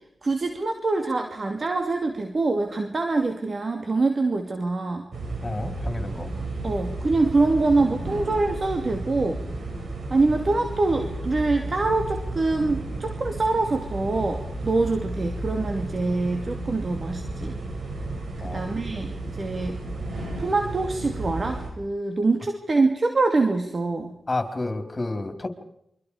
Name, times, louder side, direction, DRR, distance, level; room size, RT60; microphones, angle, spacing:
voice 1, 0.2-5.1 6.6-9.4 10.1-17.6 18.4-19.8 20.1-24.2, right 3 dB, 50° right, 4 dB, 2.6 m, -25 dB
sound 1, 5.1-21.7, right 2 dB, 75° right, 7.1 m, -33 dB
voice 2, 5.4-6.3 18.4-18.6 24.3-25.5, left 2 dB, 35° left, 6 dB, 4.4 m, -30 dB
29.0 x 25.0 x 5.1 m, 0.74 s
cardioid pair, 50°, 0 cm